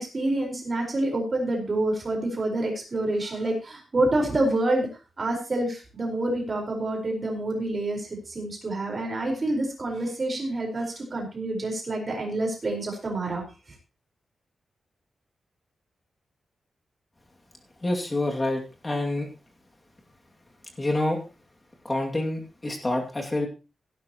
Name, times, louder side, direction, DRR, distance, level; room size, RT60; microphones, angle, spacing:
voice 1, 0.0-4.9 5.2-13.4, right 2 dB, 30° right, 1 dB, 4.6 m, -27 dB
voice 2, 17.8-19.3 20.8-21.2 21.8-23.5, left 1 dB, 20° left, 1 dB, 2.4 m, -27 dB
17.0 x 11.5 x 3.0 m, 0.31 s
wide cardioid pair, 170°, 0 cm